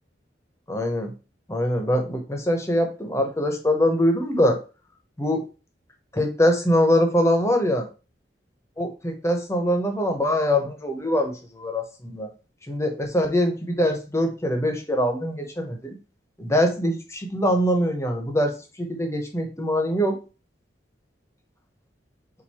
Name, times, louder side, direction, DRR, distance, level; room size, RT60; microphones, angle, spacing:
voice 1, 0.7-1.1 1.5-4.6 5.2-5.4 6.1-7.9 8.8-12.3 12.7-15.9 16.4-20.2, equal, 15° left, 4 dB, 0.8 m, -23 dB
4.5 x 2.6 x 4.2 m, 0.32 s
head